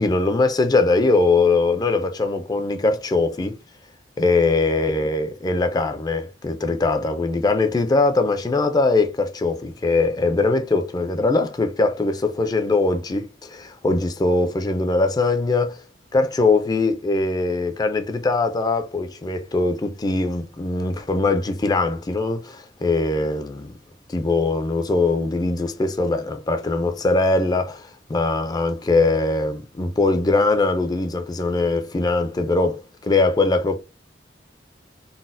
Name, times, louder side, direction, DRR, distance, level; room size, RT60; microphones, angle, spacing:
voice 1, 0.0-3.6 4.2-15.8 16.1-23.7 24.1-33.8, left 3 dB, 20° left, 0.3 m, -21 dB
3.9 x 2.0 x 2.5 m
head